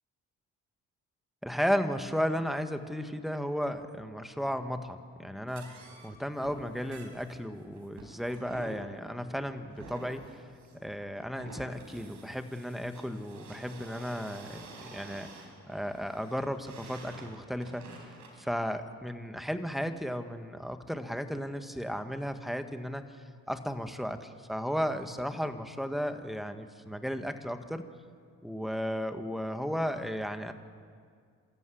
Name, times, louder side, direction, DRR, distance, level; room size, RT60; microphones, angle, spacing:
voice 1, 1.4-10.5 10.8-23.0 23.5-27.9 28.4-30.5, equal, ahead, 8 dB, 1.6 m, -34 dB
sound 1, 5.5-18.4, right 2 dB, 80° right, 4.6 m, -50 dB
27.5 x 13.5 x 8.6 m, 2.1 s
cardioid pair, 90°, 30 cm